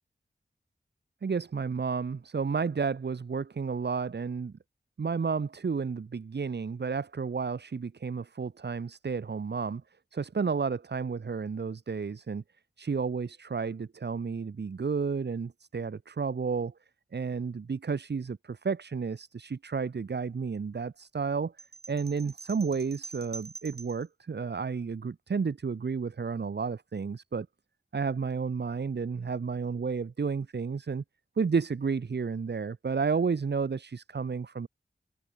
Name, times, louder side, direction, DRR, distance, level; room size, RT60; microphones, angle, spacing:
voice 1, 1.2-4.5 5.0-9.8 10.1-12.4 12.8-16.7 17.1-21.5 21.9-27.5 27.9-31.0 31.4-34.7, right 5 dB, 90° right, 5.0 m, -31 dB
sound 1, 21.6-24.1, right 4 dB, 70° right, 7.8 m, -45 dB
wide cardioid pair, 105°, 17 cm